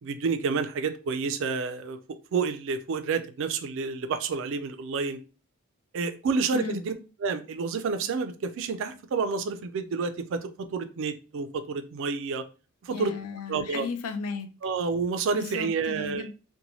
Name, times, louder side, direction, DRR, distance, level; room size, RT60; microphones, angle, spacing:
voice 1, 0.0-2.0 2.3-5.2 5.9-6.9 7.2-12.4 12.8-13.2 13.5-13.9 14.6-16.3, right 5 dB, 60° right, 0.3 m, -29 dB
voice 2, 12.9-14.5 15.3-16.3, left 4 dB, 80° left, 0.4 m, -35 dB
2.7 x 2.2 x 2.9 m
head